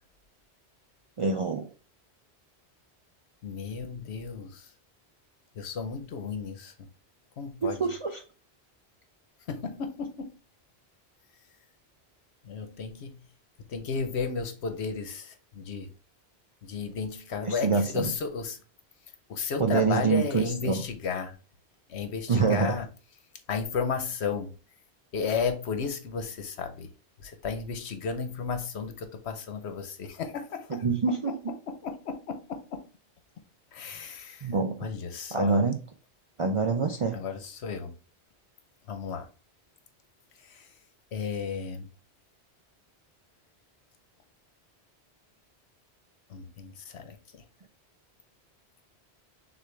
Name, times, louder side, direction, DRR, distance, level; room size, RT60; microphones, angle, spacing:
voice 1, 1.2-1.7 7.6-8.2 17.4-18.1 19.6-20.8 22.3-22.7 30.7-31.5 34.4-34.9 35.3-35.8 36.4-37.2, right 4 dB, 50° right, 0.3 m, -26 dB
voice 2, 3.4-4.7 5.6-6.7 7.4-7.8 9.5-10.3 12.4-13.2 13.7-15.9 16.6-18.6 19.3-21.3 21.9-22.9 23.5-24.5 25.1-26.9 27.2-30.7 31.2-31.3 31.7-32.8 33.7-34.5 34.8-35.6 37.1-37.9 38.9-39.3 40.5-40.6 41.1-41.9 46.3-47.4, left 5 dB, 75° left, 1.0 m, -33 dB
6.5 x 2.5 x 3.2 m
omnidirectional pair, 1.1 m